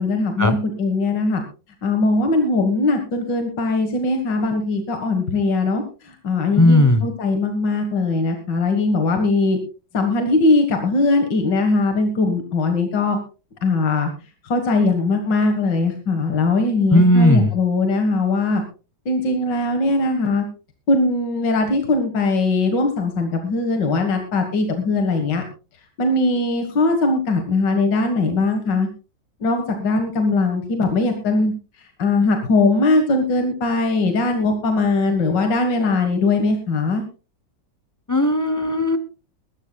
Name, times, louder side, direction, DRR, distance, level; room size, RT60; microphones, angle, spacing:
voice 1, 0.0-1.4 1.8-9.6 9.9-13.2 13.6-14.1 14.5-18.6 19.1-20.4 20.9-25.4 26.0-28.9 29.4-31.5 32.0-37.0, left 3 dB, 70° left, 5 dB, 2.3 m, -20 dB
voice 2, 6.6-7.1 16.9-17.5 38.1-39.0, left 1 dB, 30° left, 10 dB, 0.3 m, -15 dB
22.0 x 13.0 x 2.3 m, 0.34 s
omnidirectional pair, 2.0 m